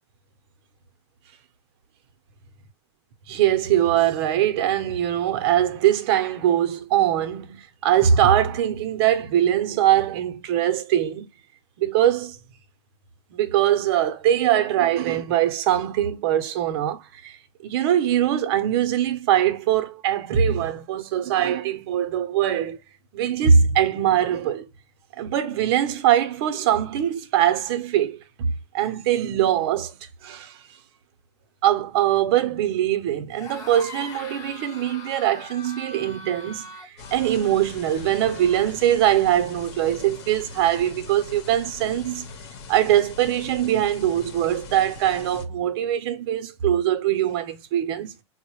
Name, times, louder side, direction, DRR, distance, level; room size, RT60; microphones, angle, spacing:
voice 1, 3.3-11.3 11.8-12.4 13.3-17.4 17.6-22.8 23.1-24.7 25.2-30.6 31.6-42.3 42.7-48.1, right 10 dB, 55° right, 0.7 m, -22 dB
sound 1, 33.3-38.7, left 2 dB, 20° left, 0.8 m, -42 dB
sound 2, 37.0-45.4, left 4 dB, 60° left, 0.9 m, -41 dB
3.9 x 2.1 x 2.9 m
supercardioid pair, 150°, 15 cm